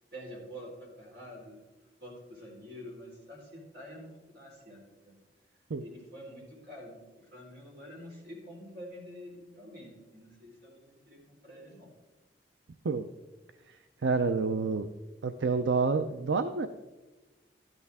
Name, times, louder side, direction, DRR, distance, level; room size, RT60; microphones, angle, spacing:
voice 1, 0.1-1.6 2.0-5.2 5.8-11.9, equal, 65° right, -2 dB, 4.1 m, -47 dB
voice 2, 13.7-14.9 15.2-16.7, right 4 dB, 85° right, 9 dB, 0.5 m, -29 dB
13.0 x 11.0 x 3.5 m, 1.2 s
head